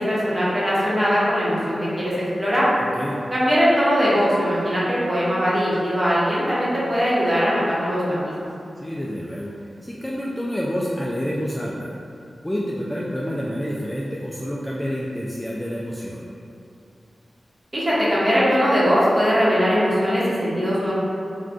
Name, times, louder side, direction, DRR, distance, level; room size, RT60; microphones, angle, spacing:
voice 1, 0.0-2.7 3.3-8.3 17.7-20.9, equal, 25° right, -9 dB, 1.1 m, -20 dB
voice 2, 8.8-11.9 12.4-16.3, equal, 10° left, -5 dB, 0.3 m, -28 dB
2.4 x 2.3 x 3.6 m, 2.5 s
cardioid pair, 50°, 0 cm